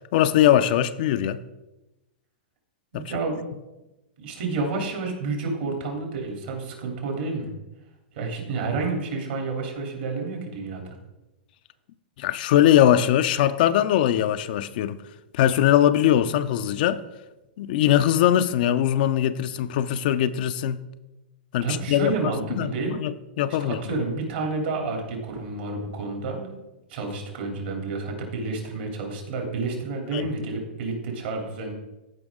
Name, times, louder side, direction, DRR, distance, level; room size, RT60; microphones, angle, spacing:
voice 1, 0.1-1.4 2.9-3.0 12.2-15.0 15.3-17.0 17.6-20.8 21.5-22.1 22.5-23.8 30.1-30.2, left 11 dB, 60° left, 0.5 m, -21 dB
voice 2, 2.9-3.4 4.2-7.5 8.1-10.9 21.6-23.0 23.5-26.5 26.9-31.7, right 3 dB, 65° right, 3.2 m, -30 dB
14.5 x 5.2 x 3.7 m
hypercardioid pair, 125°, 6 cm